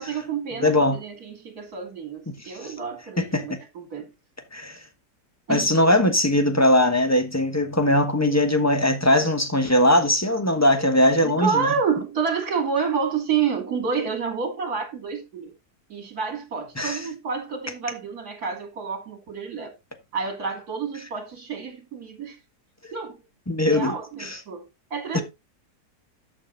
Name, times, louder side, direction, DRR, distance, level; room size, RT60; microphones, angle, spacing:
voice 1, 0.0-4.1 5.5-5.8 11.2-15.5 15.9-19.7 20.1-22.4 22.9-23.2 23.7-24.6 24.9-25.2, right 6 dB, 60° right, 2.9 m, -29 dB
voice 2, 0.6-1.0 3.2-3.6 4.5-4.8 5.5-11.7 16.8-17.1 23.5-23.9 24.2-24.4 25.1-25.2, left 1 dB, 10° left, 1.1 m, -20 dB
11.5 x 6.2 x 3.9 m
omnidirectional pair, 1.8 m